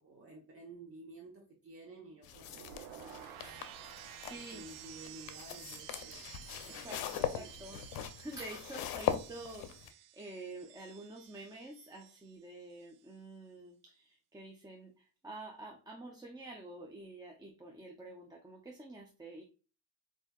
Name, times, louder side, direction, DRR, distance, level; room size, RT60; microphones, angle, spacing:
voice 1, 0.0-3.6 4.3-6.5 7.1-7.8, right 2 dB, 35° right, 0.9 m, -53 dB
sound 1, 2.2-9.9, left 11 dB, 70° left, 0.6 m, -41 dB
sound 2, 2.3-12.4 12.7-13.1, right 12 dB, 65° right, 0.5 m, -52 dB
voice 2, 4.2-4.6 6.7-7.8 8.2-19.4, right 2 dB, 10° right, 0.5 m, -48 dB
4.6 x 2.6 x 2.3 m
cardioid pair, 105°, 38 cm